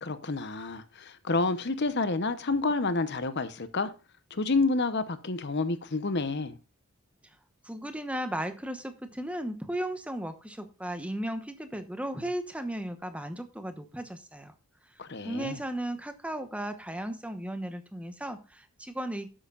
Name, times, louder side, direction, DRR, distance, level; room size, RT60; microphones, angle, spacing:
voice 1, 0.0-3.9 4.3-6.6 15.0-15.6, left 3 dB, 50° left, 0.9 m, -29 dB
voice 2, 7.6-14.5 15.2-19.3, right 1 dB, 5° right, 1.0 m, -35 dB
12.5 x 8.8 x 2.5 m
head